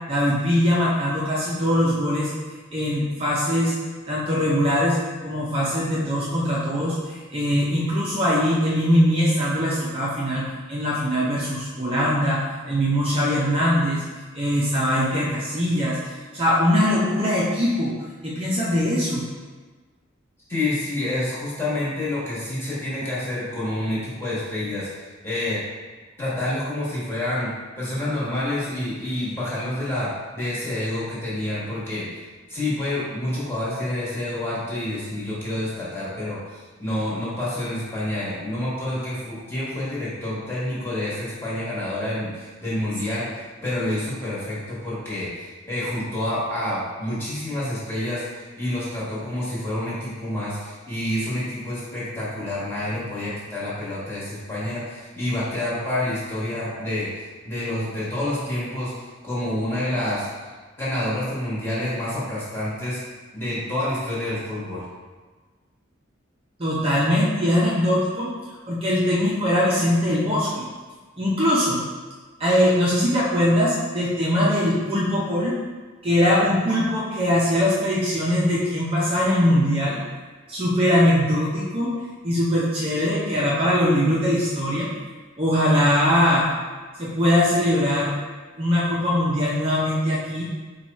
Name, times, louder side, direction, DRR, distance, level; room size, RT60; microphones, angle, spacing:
voice 1, 0.1-2.3 2.7-3.7 4.1-14.0 14.3-16.0 16.3-17.9 18.2-19.3 66.6-68.3 68.7-70.7 71.2-71.8 72.4-75.6 76.0-80.0 80.5-81.9 82.2-84.9 85.4-86.5 87.0-88.1 88.6-90.5, equal, 30° right, -7 dB, 0.5 m, -21 dB
voice 2, 20.5-25.6 26.2-32.1 32.5-60.5 60.8-63.0 63.3-64.9, left 1 dB, 10° left, -10 dB, 1.4 m, -28 dB
4.6 x 2.3 x 4.0 m, 1.4 s
head